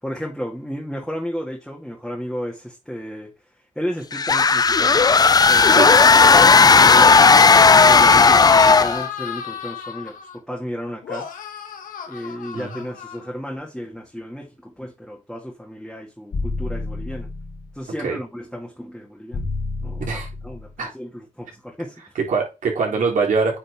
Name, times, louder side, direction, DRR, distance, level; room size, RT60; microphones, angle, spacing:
voice 1, 0.0-3.3 3.8-5.1 5.5-7.2 7.8-11.3 12.1-17.3 17.7-19.4 19.8-22.1 22.9-23.0, equal, ahead, 1.9 m, -33 dB
sound 1, 4.1-9.1, left 4 dB, 30° left, 0.5 m, -13 dB
sound 2, 7.9-10.4 11.0-13.6, left 7 dB, 85° left, 1.5 m, -32 dB
sound 3, 16.3-17.8 19.3-20.8, left 3 dB, 70° left, 3.7 m, -29 dB
voice 2, 22.3-23.6, right 4 dB, 75° right, 3.7 m, -23 dB
9.0 x 4.2 x 3.6 m
cardioid pair, 75°, 14 cm